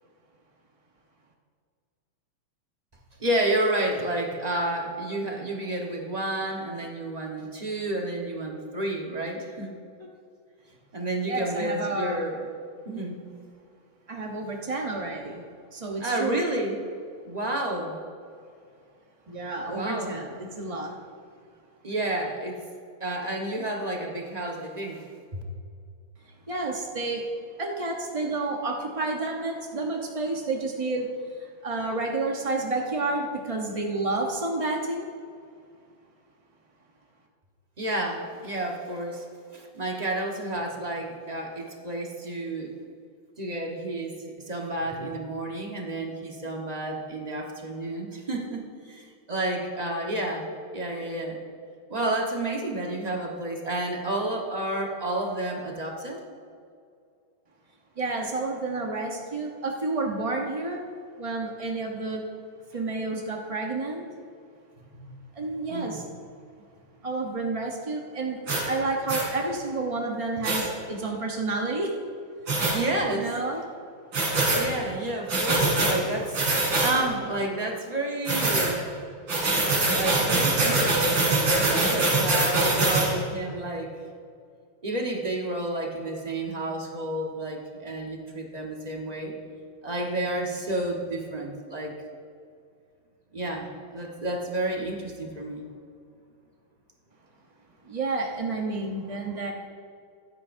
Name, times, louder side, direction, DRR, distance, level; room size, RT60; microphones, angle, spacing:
voice 1, 3.2-9.7 10.0-10.1 10.9-12.4 12.9-13.2 16.0-16.8 17.3-18.0 19.7-20.1 21.8-22.6 23.0-25.1 25.3-25.4 37.8-39.2 39.5-42.7 43.4-44.2 44.5-50.4 50.7-51.4 51.9-56.2 64.9-65.1 65.7-66.0 72.7-73.4 74.6-78.8 79.9-83.9 84.8-89.3 89.8-91.9 93.3-95.7, right 1 dB, 25° right, 0 dB, 1.0 m, -30 dB
voice 2, 11.3-12.3 14.1-15.4 15.7-16.4 19.3-20.9 26.5-27.2 27.6-35.1 58.0-60.8 61.2-62.2 62.7-64.1 65.3-66.0 67.0-68.4 68.7-71.9 72.5-72.8 73.1-73.6 97.8-99.5, right 2 dB, 65° right, 0 dB, 0.3 m, -30 dB
sound 1, 68.5-68.6 69.1-69.3 70.4-70.6 72.5-72.8 74.1-74.6 75.3-75.9 76.3-76.9 78.3-78.7 79.3-83.1, right 2 dB, 80° right, 3.8 m, -23 dB
15.5 x 12.5 x 2.6 m, 2.3 s
omnidirectional pair, 2.3 m